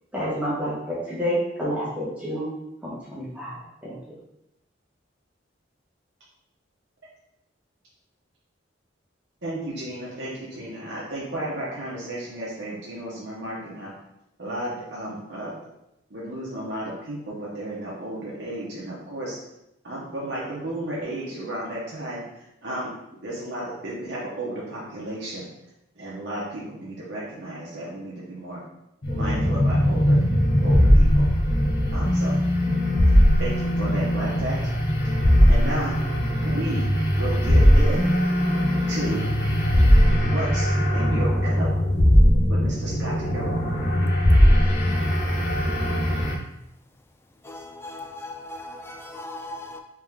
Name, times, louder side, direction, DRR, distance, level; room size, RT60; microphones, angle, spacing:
voice 1, 0.1-2.5 2.8-4.0, equal, 5° right, -8 dB, 1.1 m, -29 dB
voice 2, 9.4-13.9 14.4-15.5 16.1-19.4 19.8-22.9 23.2-25.5 26.0-28.6 29.1-30.2 30.6-31.3 31.9-32.3 33.4-34.8 35.5-36.0 36.4-36.9 37.1-38.1 38.9-39.3 40.2-41.7 42.5-43.5, right 1 dB, 65° right, -6 dB, 0.8 m, -33 dB
sound 1, 29.0-46.4, equal, 60° left, 0.9 m, -20 dB
voice 3, 47.4-49.8, left 2 dB, 15° left, 4 dB, 0.3 m, -38 dB
3.5 x 3.3 x 3.5 m, 0.86 s
head